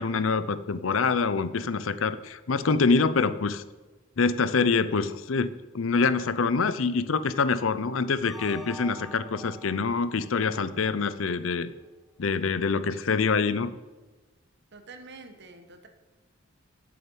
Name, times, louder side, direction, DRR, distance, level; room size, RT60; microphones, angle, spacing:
voice 1, 0.0-3.6 4.2-11.7 12.2-13.7, left 4 dB, 80° left, 14 dB, 0.6 m, -25 dB
sound 1, 8.2-11.4, right 1 dB, ahead, 0.8 m, -46 dB
voice 2, 14.7-15.9, right 3 dB, 60° right, 7 dB, 1.3 m, -47 dB
8.6 x 6.8 x 7.8 m, 1.2 s
head